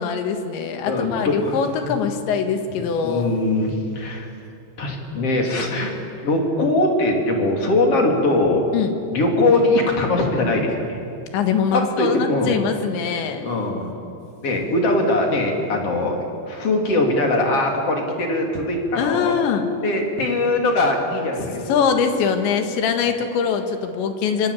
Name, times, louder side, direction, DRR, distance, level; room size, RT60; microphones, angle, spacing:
voice 1, 0.0-3.4 8.7-8.9 11.3-13.4 19.0-19.7 21.7-24.5, left 6 dB, 85° left, 6 dB, 4.1 m, -22 dB
voice 2, 0.9-1.6 1.8-1.9 2.8-4.3 4.8-5.9 6.2-8.6 9.1-11.0 11.7-12.5 13.4-13.9 14.4-19.3 19.8-22.1, left 2 dB, 35° left, 1 dB, 4.0 m, -21 dB
27.0 x 25.0 x 8.6 m, 2.6 s
omnidirectional pair, 5.0 m